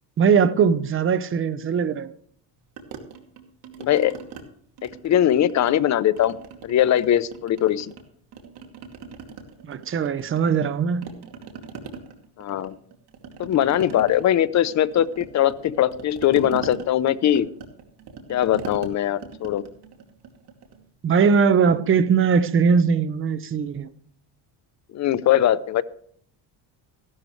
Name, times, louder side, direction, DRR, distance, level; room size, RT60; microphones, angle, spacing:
voice 1, 0.2-2.1 9.7-11.1 21.0-23.9, right 6 dB, 30° right, 0.8 m, -20 dB
sound 1, 2.8-4.4 4.8-5.9 6.2-8.0 8.3-10.7 11.0-20.8, right 6 dB, 60° right, 2.5 m, -40 dB
voice 2, 3.8-4.1 4.8-6.4 6.6-7.9 12.4-12.8 13.4-17.5 18.3-19.6 24.9-25.8, left 11 dB, 40° left, 0.7 m, -21 dB
15.5 x 12.0 x 3.2 m
cardioid pair, 145°, 43 cm